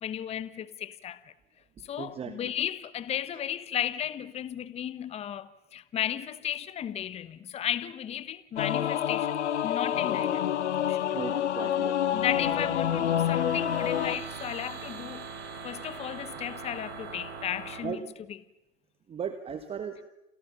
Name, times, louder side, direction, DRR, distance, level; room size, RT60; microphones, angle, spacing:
voice 1, 0.0-1.3 1.8-9.4 9.6-10.5 10.8-11.1 12.1-15.3 15.6-18.4, left 10 dB, 15° left, 1.1 m, -34 dB
voice 2, 2.0-2.5 11.1-12.2 17.8-18.0 19.1-20.0, right 7 dB, 15° right, 1.4 m, -37 dB
Singing / Musical instrument, 8.6-14.2, left 10 dB, 70° left, 1.7 m, -28 dB
sound 1, 12.1-17.8, right 5 dB, 55° right, 7.3 m, -41 dB
29.0 x 28.0 x 6.9 m
hypercardioid pair, 120°, 36 cm